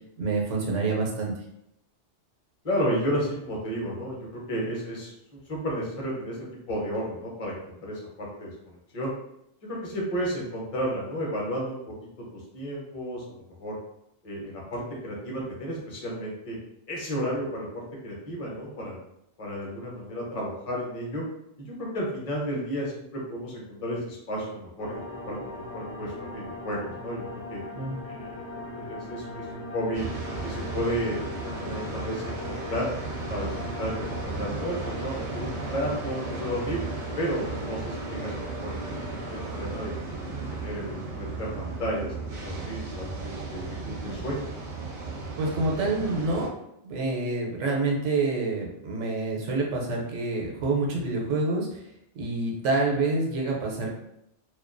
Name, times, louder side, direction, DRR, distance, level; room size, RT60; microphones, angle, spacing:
voice 1, 0.2-1.3 27.8-28.0 45.4-46.5 46.8-51.8 52.2-53.9, right 3 dB, 85° right, -1 dB, 0.9 m, -27 dB
voice 2, 2.6-6.4 6.7-9.1 9.6-13.8 14.2-16.6 16.9-19.0 19.4-21.2 21.6-27.6 28.0-30.1 30.4-32.3 32.7-32.9 33.3-36.8 37.2-38.8 39.3-44.4, equal, 40° left, -3 dB, 0.6 m, -33 dB
sound 1, 24.8-39.5, left 1 dB, 75° left, 0.8 m, -39 dB
sound 2, 29.9-46.5, right 3 dB, 55° right, 0.5 m, -35 dB
2.3 x 2.2 x 2.4 m, 0.79 s
omnidirectional pair, 1.2 m